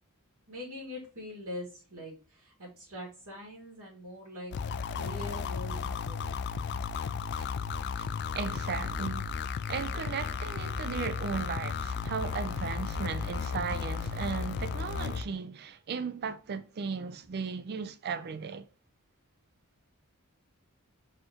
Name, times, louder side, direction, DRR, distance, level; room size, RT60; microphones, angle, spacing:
voice 1, 0.5-6.4, left 1 dB, 70° right, 2.2 m, -43 dB
sound 1, 4.5-15.2, left 6 dB, 50° left, 0.3 m, -34 dB
voice 2, 8.3-9.3 9.7-18.7, right 5 dB, 45° right, 0.4 m, -36 dB
4.3 x 3.7 x 3.0 m
head